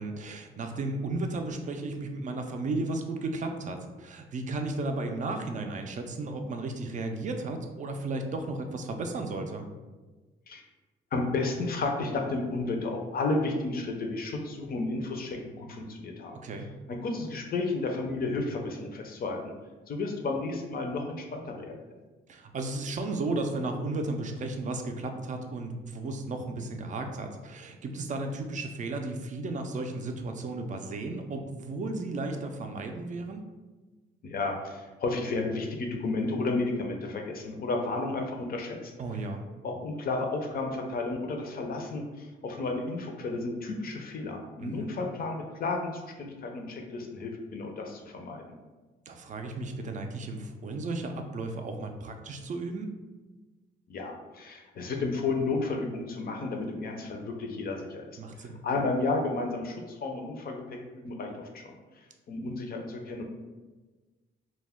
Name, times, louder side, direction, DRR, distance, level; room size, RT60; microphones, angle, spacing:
voice 1, 0.0-9.7 16.3-16.7 22.3-33.4 39.0-39.4 44.6-44.9 49.1-52.9 58.2-58.6, right 2 dB, 40° right, 5 dB, 0.4 m, -34 dB
voice 2, 11.1-16.4 17.0-19.5 19.9-21.8 34.2-38.9 39.6-48.6 53.9-58.0 58.4-61.7 62.3-63.2, left 3 dB, 50° left, 2 dB, 0.5 m, -32 dB
2.2 x 2.1 x 3.5 m, 1.3 s
cardioid pair, 90°, 20 cm